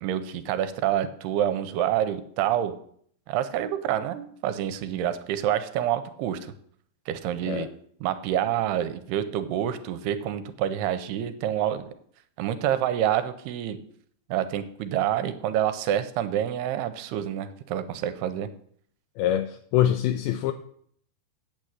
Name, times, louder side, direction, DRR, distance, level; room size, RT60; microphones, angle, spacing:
voice 1, 0.0-2.7 3.3-6.5 7.1-7.7 8.0-11.9 12.4-13.8 14.3-18.5, right 11 dB, 85° right, 11 dB, 2.8 m, -27 dB
voice 2, 19.2-20.5, left 11 dB, 80° left, 6 dB, 2.4 m, -24 dB
9.0 x 7.6 x 8.2 m, 0.62 s
omnidirectional pair, 4.7 m